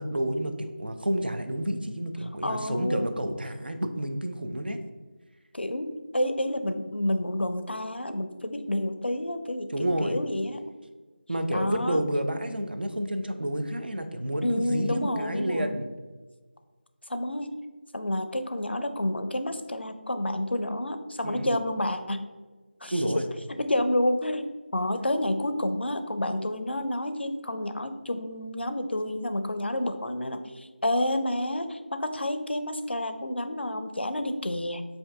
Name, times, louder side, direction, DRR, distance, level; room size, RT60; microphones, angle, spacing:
voice 1, 0.0-4.8 9.7-10.2 11.3-16.0 21.2-21.6 22.8-23.3, right 1 dB, 65° right, 6 dB, 0.5 m, -30 dB
voice 2, 2.4-3.1 5.5-9.7 10.0-10.7 11.5-12.0 14.4-15.7 17.1-17.5 17.9-22.3 22.8-23.0 23.5-24.5 24.7-34.9, left 1 dB, 80° left, 8 dB, 0.4 m, -29 dB
7.2 x 2.6 x 2.2 m, 1.3 s
figure-of-eight pair, 165°, 6 cm